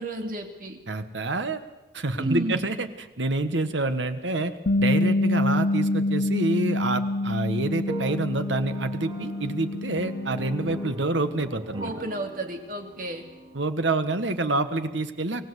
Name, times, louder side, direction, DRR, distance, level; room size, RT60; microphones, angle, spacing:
voice 1, 0.0-0.8 2.2-2.7 11.8-13.2, right 1 dB, 50° right, 4 dB, 2.6 m, -32 dB
voice 2, 0.9-1.6 1.9-11.9 13.5-15.4, right 2 dB, 80° right, 9 dB, 1.5 m, -27 dB
Bass guitar, 4.7-10.9, left 2 dB, 55° left, 0.7 m, -26 dB
sound 1, 7.8-13.7, right 1 dB, 20° right, 2.1 m, -42 dB
24.0 x 17.0 x 8.2 m, 1.1 s
head